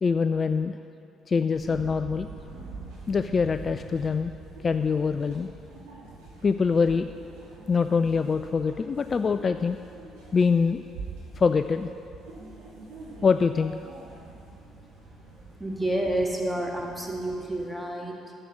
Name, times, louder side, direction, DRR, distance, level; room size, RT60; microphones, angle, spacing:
voice 1, 0.0-0.8 1.3-2.3 3.1-4.3 4.6-5.5 6.4-7.1 7.7-9.8 10.3-10.9 11.4-11.9 13.2-13.7, left 5 dB, 35° left, 9 dB, 0.3 m, -24 dB
sound 1, 1.5-17.7, right 3 dB, 75° right, 2.6 m, -44 dB
voice 2, 15.6-18.4, right 1 dB, 5° right, 0 dB, 1.9 m, -29 dB
11.0 x 7.6 x 6.2 m, 2.6 s
hypercardioid pair, 50°, 0 cm